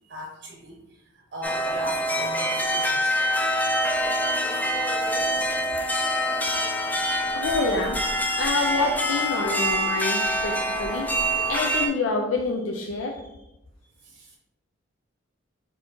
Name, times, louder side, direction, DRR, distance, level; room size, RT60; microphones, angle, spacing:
voice 1, 0.0-3.2 14.0-14.4, equal, 50° right, 0 dB, 0.7 m, -40 dB
sound 1, 1.4-11.9, equal, 10° left, 0.4 m, -25 dB
voice 2, 7.3-8.0 8.4-11.1 11.5-13.2, left 3 dB, 80° left, 1 dB, 0.5 m, -27 dB
4.2 x 2.8 x 4.4 m, 0.91 s
head